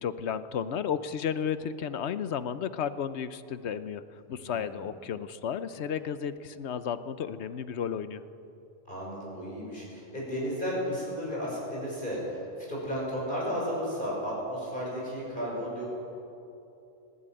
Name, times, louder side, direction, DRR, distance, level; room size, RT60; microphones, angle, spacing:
voice 1, 0.0-4.0 4.3-8.2, left 8 dB, 75° left, 13 dB, 1.1 m, -33 dB
voice 2, 4.3-4.8 8.9-12.4 12.7-15.9, equal, 45° left, -4 dB, 6.1 m, -33 dB
20.0 x 15.5 x 9.0 m, 2.8 s
omnidirectional pair, 1.2 m